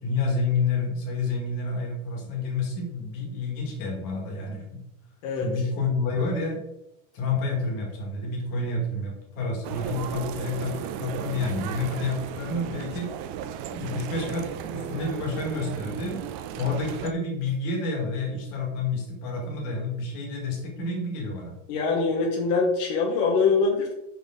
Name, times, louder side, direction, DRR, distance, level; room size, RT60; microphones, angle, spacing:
voice 1, 0.0-4.8 5.4-6.6 7.1-13.1 13.7-16.3 16.6-21.5, left 3 dB, 65° left, 0 dB, 3.0 m, -29 dB
sound 1, 9.6-17.1, right 9 dB, 85° right, 2.2 m, -35 dB
voice 2, 21.7-23.9, left 4 dB, 85° left, -1 dB, 2.6 m, -23 dB
8.2 x 5.4 x 3.7 m, 0.86 s
omnidirectional pair, 3.7 m